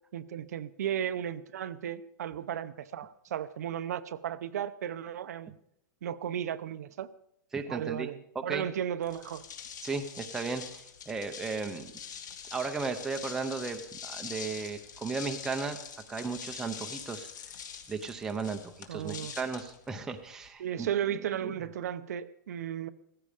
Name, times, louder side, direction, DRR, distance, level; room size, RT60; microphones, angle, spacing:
voice 1, 0.1-5.5 6.0-7.1 7.7-9.5 18.9-19.4 20.6-22.9, right 10 dB, 55° right, 0.7 m, -35 dB
voice 2, 7.5-8.1 8.3-8.7 9.8-11.9 12.5-15.8 16.1-17.3 17.9-20.9 21.4-21.6, right 4 dB, 5° right, 0.7 m, -35 dB
sound 1, 9.0-20.5, left 7 dB, 70° left, 2.1 m, -44 dB
16.5 x 14.5 x 5.0 m
supercardioid pair, 175°, 10 cm